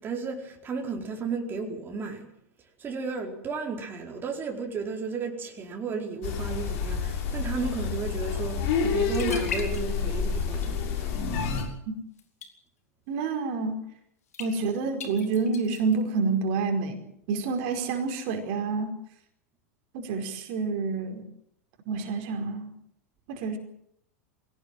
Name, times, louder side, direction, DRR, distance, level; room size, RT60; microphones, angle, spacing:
voice 1, 0.0-2.3 2.8-11.1, right 4 dB, 25° right, 4.7 m, -33 dB
sound 1, 6.2-11.6, left 6 dB, 55° left, 6.7 m, -29 dB
sound 2, 8.9-9.0 9.1-10.2 10.5-10.9 12.2-12.5 14.3-14.5 15.0-16.0, left 6 dB, 75° left, 4.3 m, -37 dB
voice 2, 13.1-13.8 14.4-18.9 19.9-21.2 21.9-22.7 23.3-23.6, right 4 dB, 55° right, 4.7 m, -28 dB
24.0 x 18.0 x 7.7 m
figure-of-eight pair, 95°, 8 cm